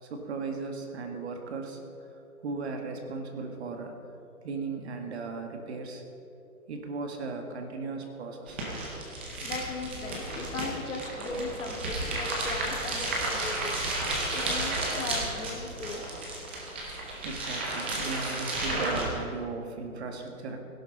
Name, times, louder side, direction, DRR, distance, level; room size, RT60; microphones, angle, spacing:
voice 1, 0.0-1.8 2.4-3.9 4.4-6.0 6.7-8.7 17.2-20.6, right 4 dB, 45° right, 4 dB, 1.9 m, -37 dB
sound 1, 8.5-19.1, right 2 dB, 10° right, 0.6 m, -33 dB
voice 2, 9.4-13.7 14.3-16.0, left 3 dB, 55° left, 3 dB, 2.0 m, -38 dB
17.0 x 11.5 x 5.4 m, 2.8 s
hypercardioid pair, 150°, 45 cm